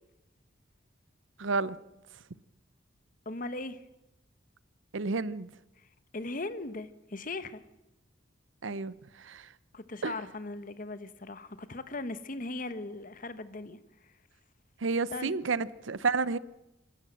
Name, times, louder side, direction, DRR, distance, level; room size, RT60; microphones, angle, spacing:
voice 1, 1.4-1.8 4.9-5.5 8.6-9.5 10.0-10.1 14.8-16.4, right 4 dB, 80° right, 0.7 m, -30 dB
voice 2, 3.2-3.8 5.8-5.9 6.1-7.6 9.7-14.1 15.1-15.3, left 2 dB, 45° left, 1.1 m, -39 dB
27.5 x 13.0 x 7.7 m
head